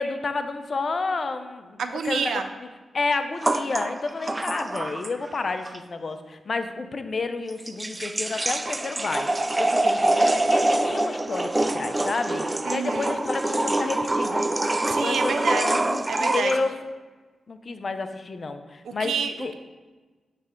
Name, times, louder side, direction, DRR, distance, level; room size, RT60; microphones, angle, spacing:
voice 1, 0.0-2.4 2.9-14.4 15.0-16.8 17.5-19.1 19.4-19.5, left 3 dB, 50° left, 8 dB, 0.5 m, -30 dB
voice 2, 1.8-2.4 12.6-13.1 14.8-15.8 16.1-16.5 18.8-19.5, right 6 dB, 80° right, 8 dB, 0.5 m, -29 dB
sound 1, 3.4-5.4 5.7-5.8 7.5-16.6, right 2 dB, 25° right, 0.4 m, -25 dB
9.6 x 3.3 x 3.7 m, 1.3 s
cardioid pair, 60°, 0 cm